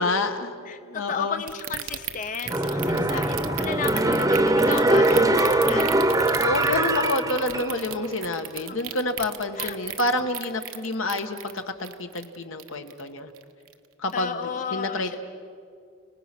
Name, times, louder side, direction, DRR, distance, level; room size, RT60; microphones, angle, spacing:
voice 1, 0.0-0.5 0.9-1.4 2.9-3.1 5.0-5.3 6.4-13.3 14.0-15.2, left 2 dB, 80° left, 6 dB, 1.6 m, -28 dB
voice 2, 0.7-6.3 8.7-8.8 9.6-9.8 10.7-10.8 14.1-15.2, left 6 dB, 40° left, 9 dB, 0.5 m, -33 dB
sound 1, 1.5-13.1 13.4-13.7 14.1-14.2, right 11 dB, 85° right, 1.0 m, -34 dB
sound 2, 2.5-8.0 8.4-8.5, right 1 dB, 15° right, 0.9 m, -22 dB
30.0 x 19.0 x 6.1 m, 2.3 s
head